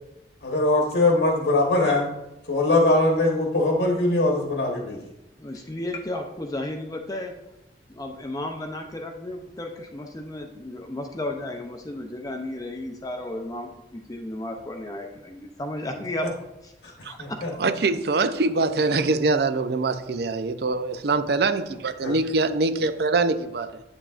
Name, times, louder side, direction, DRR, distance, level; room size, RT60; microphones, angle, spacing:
voice 1, 0.4-2.1 2.5-5.0 17.2-17.5 22.0-22.1, left 2 dB, 75° left, -1 dB, 1.2 m, -21 dB
voice 2, 5.4-7.3 7.9-16.3 16.6-16.7 17.1-17.2, left 1 dB, 20° left, 3 dB, 0.5 m, -33 dB
voice 3, 17.6-23.8, right 3 dB, 60° right, 11 dB, 0.5 m, -24 dB
8.8 x 7.0 x 2.4 m, 0.93 s
head